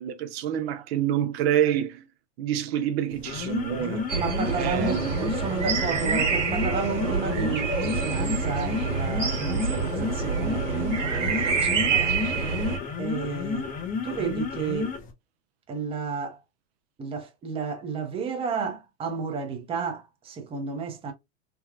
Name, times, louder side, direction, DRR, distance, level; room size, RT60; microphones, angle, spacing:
voice 1, 0.0-2.0 2.4-4.1 4.6-5.2, right 10 dB, 60° right, 0.5 m, -27 dB
sound 1, 3.1-15.1, left 6 dB, 25° left, 0.6 m, -32 dB
voice 2, 3.8-13.7 14.0-15.0 15.7-16.4 17.0-21.1, right 5 dB, 15° right, 0.6 m, -32 dB
sound 2, 4.1-12.8, right 5 dB, 85° right, 1.2 m, -27 dB
3.4 x 2.2 x 2.3 m
hypercardioid pair, 120°, 36 cm